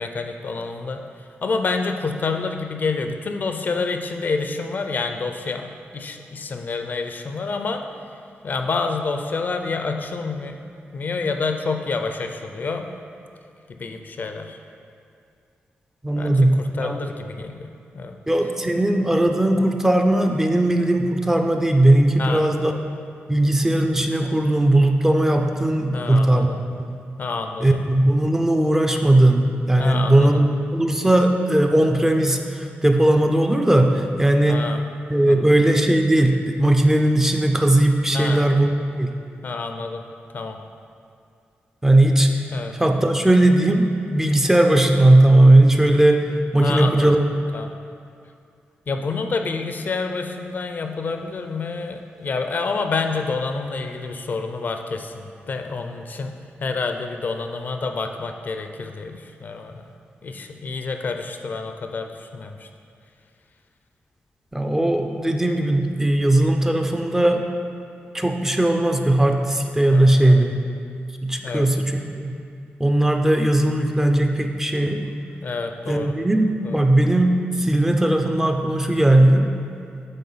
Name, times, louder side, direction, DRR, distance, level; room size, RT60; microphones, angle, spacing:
voice 1, 0.0-7.8 8.4-10.6 10.9-12.9 13.7-14.6 16.2-18.1 18.6-18.7 22.2-22.5 25.9-26.6 27.2-27.8 29.8-30.4 34.5-34.8 35.3-35.5 38.1-38.4 39.4-40.0 40.3-40.6 42.5-42.8 46.6-47.1 47.5-47.7 48.9-56.3 56.6-59.8 60.2-62.7 69.9-70.4 71.4-71.7 75.4-76.1 76.6-76.8, left 4 dB, 45° left, 5 dB, 0.4 m, -28 dB
voice 2, 16.0-17.1 18.3-22.9 23.3-26.5 27.6-34.6 35.1-38.7 39.0-39.1 41.8-42.3 42.7-47.2 64.5-67.4 68.1-70.6 71.2-72.3 72.8-75.0 75.9-79.5, right 1 dB, 10° right, 3 dB, 0.4 m, -18 dB
8.6 x 3.4 x 5.5 m, 2.4 s
wide cardioid pair, 140°, 4 cm